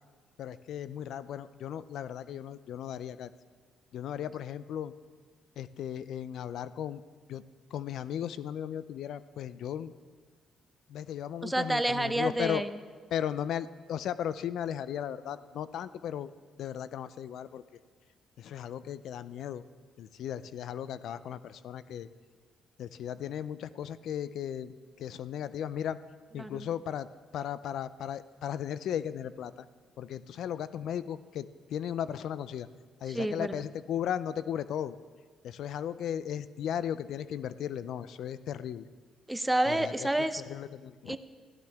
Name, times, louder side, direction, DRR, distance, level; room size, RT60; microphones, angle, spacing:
voice 1, 0.4-3.3 3.9-4.9 5.6-7.0 7.3-7.4 7.7-9.9 10.9-12.6 13.1-16.3 16.6-17.6 18.4-19.6 20.0-22.1 22.8-26.0 26.3-27.1 27.3-29.7 30.0-32.7 33.0-35.0 35.4-38.9 39.7-40.1 40.5-41.2, left 9 dB, 75° left, 15 dB, 0.4 m, -36 dB
voice 2, 11.4-12.7 26.4-26.7 33.1-33.6 39.3-40.4 41.1-41.2, right 1 dB, 10° right, 11 dB, 0.6 m, -29 dB
15.0 x 11.5 x 3.5 m, 1.5 s
cardioid pair, 90°, 0 cm